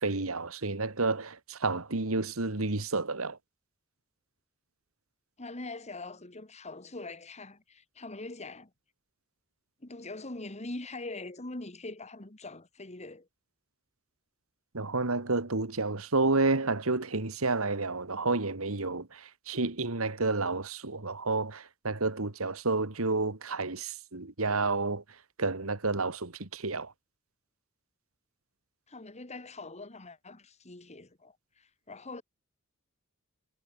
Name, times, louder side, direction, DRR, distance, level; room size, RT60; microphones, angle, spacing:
voice 1, 0.0-3.4 14.7-25.0 25.4-26.9, right 3 dB, 80° right, 2.0 m, -30 dB
voice 2, 5.4-8.7 9.8-13.3 28.9-32.2, left 2 dB, 35° left, 2.1 m, -43 dB
head